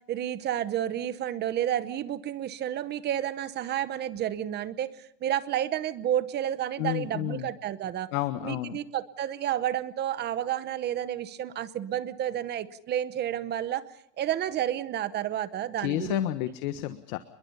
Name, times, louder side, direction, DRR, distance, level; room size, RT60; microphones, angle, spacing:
voice 1, 0.1-8.1 8.4-13.8 14.2-16.3, right 11 dB, 20° right, 15 dB, 0.9 m, -30 dB
voice 2, 6.8-7.5 8.1-8.8 15.8-17.2, left 15 dB, 55° left, 11 dB, 1.5 m, -30 dB
29.5 x 22.0 x 5.5 m, 0.71 s
supercardioid pair, 160°, 49 cm